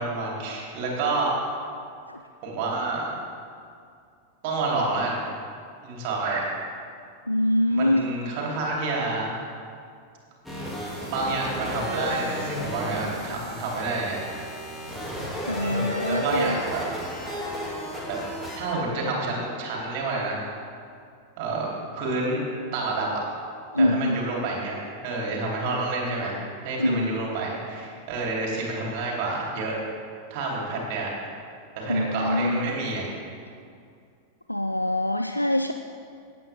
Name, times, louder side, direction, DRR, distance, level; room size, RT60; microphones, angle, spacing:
voice 1, 0.0-1.3 2.4-3.1 4.4-5.2 5.8-6.6 7.7-9.3 11.0-14.2 15.6-16.9 17.2-17.4 18.0-18.2 18.6-20.5 21.4-21.7 22.0-22.4 22.7-23.2 23.8-24.8 25.0-26.4 26.6-29.7 30.3-31.1 31.8-33.2, right 3 dB, 45° right, -3 dB, 3.3 m, -29 dB
voice 2, 7.3-8.0 15.5-16.6 23.7-24.2 26.8-27.2 31.9-32.7 34.5-35.7, left 1 dB, 85° left, 7 dB, 0.3 m, -24 dB
sound 1, 10.4-18.7, left 1 dB, 5° left, 2.4 m, -34 dB
16.5 x 8.8 x 3.6 m, 2.3 s
figure-of-eight pair, 90°, 0 cm